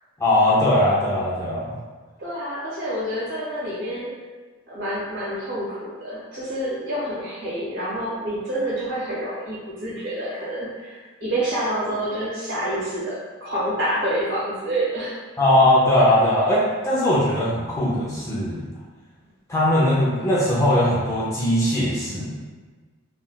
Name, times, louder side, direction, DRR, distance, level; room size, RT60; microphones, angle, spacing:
voice 1, 0.2-1.8 15.4-18.6 19.5-22.3, left 1 dB, 15° left, -7 dB, 0.5 m, -20 dB
voice 2, 2.2-4.1 4.7-15.2, right 1 dB, 60° right, -8 dB, 1.2 m, -28 dB
3.6 x 2.3 x 2.2 m, 1.4 s
head